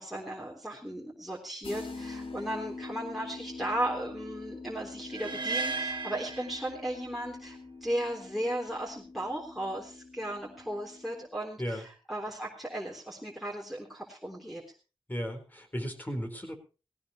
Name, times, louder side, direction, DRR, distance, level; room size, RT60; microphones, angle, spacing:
voice 1, 0.0-14.6, right 1 dB, ahead, -3 dB, 3.7 m, -36 dB
sound 1, 1.6-11.3, left 3 dB, 90° left, 3.2 m, -45 dB
sound 2, 5.1-7.3, right 4 dB, 55° right, 2.0 m, -35 dB
voice 2, 15.1-16.5, equal, 20° left, 5 dB, 4.3 m, -35 dB
18.0 x 17.5 x 3.1 m, 0.33 s
wide cardioid pair, 75°, 9 cm